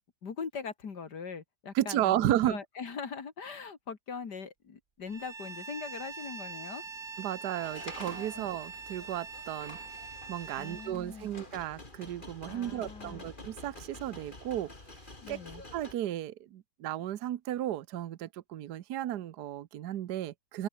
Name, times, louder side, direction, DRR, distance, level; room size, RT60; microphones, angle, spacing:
voice 1, 0.2-2.1 2.5-6.8 8.3-8.5 10.6-11.3 12.5-13.2 15.2-15.6, left 5 dB, 70° left, 2.7 m, -41 dB
voice 2, 1.7-2.6 7.2-9.8 10.3-14.7 15.3-15.4 15.7-20.7, right 12 dB, 70° right, 1.4 m, -33 dB
Bowed string instrument, 5.1-11.0, right 5 dB, 30° right, 1.4 m, -44 dB
sound 1, 5.3-11.1, right 2 dB, 55° right, 6.9 m, -56 dB
sound 2, 7.6-15.9, left 2 dB, 30° left, 3.8 m, -49 dB
open air
omnidirectional pair, 1.8 m